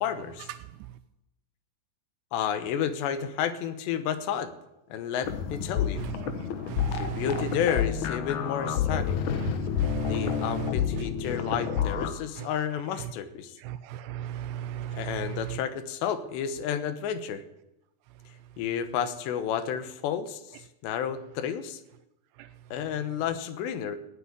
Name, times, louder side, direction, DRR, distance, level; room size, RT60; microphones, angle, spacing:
voice 1, 0.0-0.5 2.3-4.5 4.9-6.1 6.9-9.2 10.1-13.5 14.9-17.4 18.6-20.4 20.8-21.8 22.7-24.0, left 8 dB, 90° left, 11 dB, 3.3 m, -31 dB
sound 1, 5.2-12.1, left 8 dB, 65° left, 2.0 m, -29 dB
voice 2, 6.6-7.2 9.4-10.7 12.4-12.5 13.6-15.4, right 11 dB, 90° right, 10 dB, 2.9 m, -36 dB
16.0 x 8.5 x 9.8 m, 0.90 s
omnidirectional pair, 4.8 m